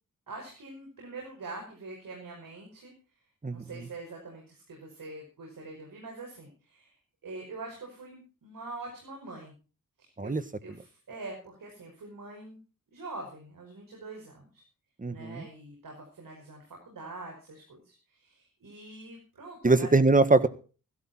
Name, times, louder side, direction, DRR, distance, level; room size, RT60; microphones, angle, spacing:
voice 1, 0.3-2.9 3.5-6.9 7.2-9.5 10.0-12.6 12.9-14.6 15.1-19.9, right 3 dB, 80° right, 1 dB, 5.6 m, -44 dB
voice 2, 15.0-15.4 19.6-20.5, right 3 dB, 25° right, 13 dB, 1.5 m, -22 dB
16.0 x 12.5 x 4.4 m, 0.36 s
cardioid pair, 70°, 33 cm